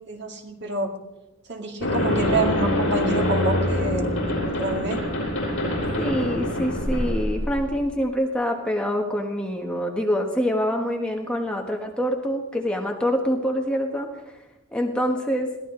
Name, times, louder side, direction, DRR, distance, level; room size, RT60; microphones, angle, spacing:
voice 1, 0.1-0.9 1.5-4.1 4.4-5.0, right 2 dB, 50° right, 2 dB, 2.2 m, -27 dB
sound 1, 1.8-7.8, left 1 dB, 55° left, 7.2 m, -25 dB
voice 2, 6.0-14.1 14.7-15.5, equal, 5° left, 1 dB, 1.3 m, -25 dB
22.0 x 16.5 x 3.8 m, 0.94 s
head